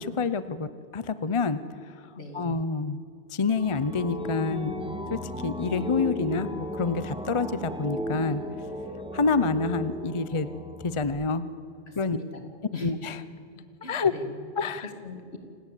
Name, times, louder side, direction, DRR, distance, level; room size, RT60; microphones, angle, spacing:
voice 1, 0.0-3.0 3.3-4.7 5.1-8.4 9.1-10.5 10.8-11.5 12.0-12.2 12.8-13.2 13.9-14.1 14.6-14.9, left 4 dB, 30° left, 13 dB, 0.7 m, -28 dB
voice 2, 2.1-2.6 11.9-12.4 12.7-13.0 13.5-15.4, left 3 dB, 70° left, 4 dB, 2.9 m, -42 dB
sound 1, 3.5-11.0, equal, 5° right, 1.8 m, -36 dB
27.5 x 18.5 x 8.5 m, 2.4 s
omnidirectional pair, 1.1 m